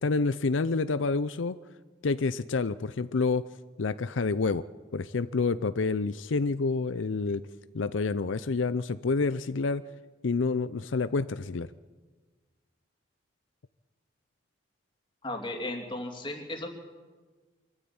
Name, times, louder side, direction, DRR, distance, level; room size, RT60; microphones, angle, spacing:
voice 1, 0.0-1.5 2.0-3.4 3.8-4.6 4.9-7.4 7.7-9.8 10.2-11.7, left 4 dB, 85° left, 13 dB, 0.6 m, -28 dB
voice 2, 15.2-16.7, left 1 dB, 25° left, 2 dB, 2.8 m, -35 dB
24.5 x 14.0 x 8.8 m, 1.4 s
head